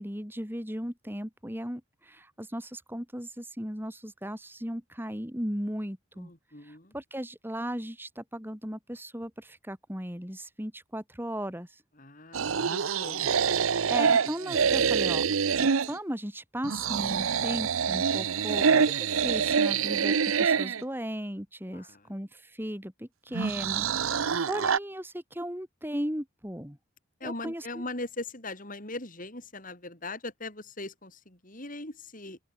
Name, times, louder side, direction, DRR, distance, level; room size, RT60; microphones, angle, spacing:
voice 1, 0.0-6.3 6.6-11.8 13.9-15.2 15.9-20.1 20.4-26.8 27.2-27.8, equal, 10° right, 5.3 m, -36 dB
voice 2, 6.2-6.9 12.0-13.4 21.7-22.1 23.8-24.4 27.2-32.4, left 2 dB, 40° left, 6.1 m, -40 dB
sound 1, 12.3-16.0 16.6-20.8 23.3-24.8, right 6 dB, 90° right, 0.7 m, -26 dB
open air
head